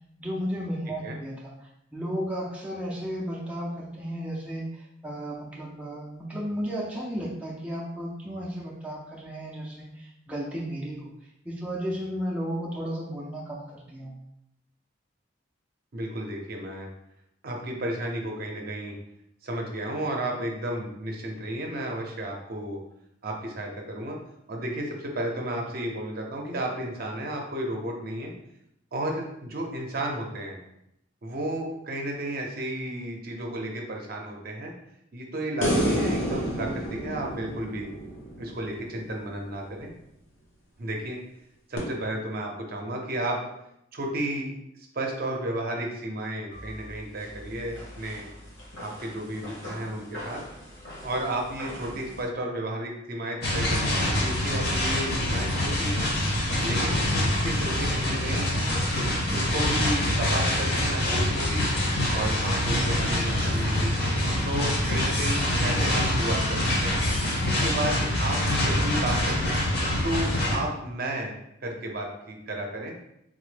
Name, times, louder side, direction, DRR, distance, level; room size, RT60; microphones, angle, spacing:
voice 1, 0.2-11.1 11.5-14.2, equal, 5° right, -5 dB, 0.4 m, -34 dB
voice 2, 15.9-16.9 17.4-18.9 19.4-22.8 23.2-24.2 24.5-28.3 28.9-30.6 31.2-34.7 35.1-37.9 38.4-39.9 40.8-41.2 41.7-43.4 43.9-44.5 44.9-48.3 48.8-50.4 51.0-56.0 56.6-58.5 58.9-61.6 62.1-63.9 64.4-67.0 67.4-69.6 70.0-71.3 71.6-72.9, right 1 dB, 50° right, 1 dB, 0.6 m, -33 dB
sound 1, 35.6-38.9 41.8-41.9, equal, 90° left, 0.9 m, -29 dB
sound 2, 46.5-52.3, equal, 70° left, 1.2 m, -43 dB
sound 3, 53.4-70.6, left 1 dB, 55° left, 0.9 m, -25 dB
3.7 x 2.1 x 3.2 m, 0.80 s
head